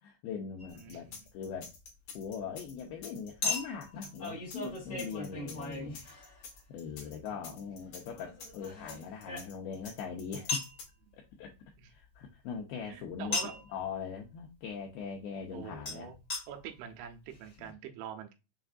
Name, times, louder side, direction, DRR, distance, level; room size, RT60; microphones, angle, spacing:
voice 1, 0.0-1.1 1.3-1.7 2.1-6.0 6.7-10.6 11.1-11.5 11.9-13.4 13.7-16.1 17.6-17.7, left 6 dB, 85° left, 0 dB, 2.2 m, -41 dB
Chink clink, 0.6-0.7 3.4-6.6 8.2-9.8 10.5-10.8 13.3-13.7 15.9-16.0 16.3-16.4 17.1-17.2 17.3-17.4, left 3 dB, 30° left, 1.3 m, -37 dB
sound 1, 0.7-10.8, left 5 dB, 60° left, 1.9 m, -49 dB
voice 2, 0.8-1.2 7.0-7.6 11.8-11.9 12.9-13.6 15.5-16.2 16.5-18.3, right 9 dB, 85° right, 5 dB, 3.2 m, -45 dB
6.9 x 2.6 x 2.4 m, 0.28 s
omnidirectional pair, 5.2 m